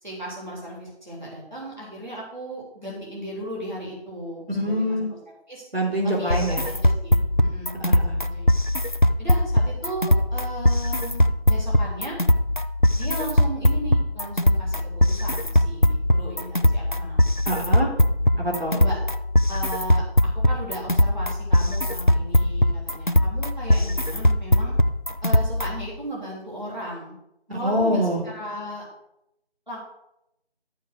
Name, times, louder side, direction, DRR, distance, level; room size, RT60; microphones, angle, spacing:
voice 1, 0.0-5.2 5.5-5.6 6.0-8.4 9.2-12.2 12.9-14.8 15.1-17.2 18.7-19.0 19.5-20.0 20.5-24.7 25.2-27.2 27.5-28.9 29.7-29.8, right 1 dB, 45° right, -5 dB, 3.4 m, -36 dB
voice 2, 4.5-5.1 5.7-6.6 7.8-8.2 17.5-17.9 18.4-18.7 27.5-28.2, equal, 65° right, -2 dB, 3.6 m, -25 dB
sound 1, 6.3-25.9, left 1 dB, 50° left, 0.5 m, -21 dB
13.0 x 4.9 x 6.4 m, 0.82 s
figure-of-eight pair, 180°, 32 cm